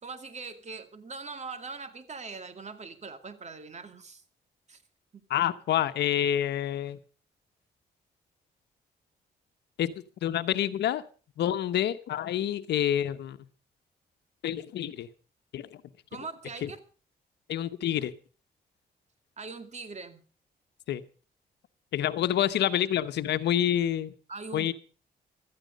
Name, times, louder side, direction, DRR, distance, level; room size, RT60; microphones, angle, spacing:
voice 1, 0.0-4.2 4.7-4.8 5.1-5.2 16.1-16.8 19.4-20.2 22.1-22.2 24.3-24.7, right 4 dB, 40° right, 9 dB, 2.3 m, -41 dB
voice 2, 5.3-7.0 9.8-9.9 10.2-11.0 11.4-13.4 14.4-15.1 15.5-15.8 16.6-16.7 17.5-18.1 20.9-21.0 21.9-24.1 24.5-24.7, left 11 dB, 80° left, 11 dB, 1.0 m, -27 dB
16.0 x 13.0 x 5.3 m, 0.38 s
cardioid pair, 70°, 17 cm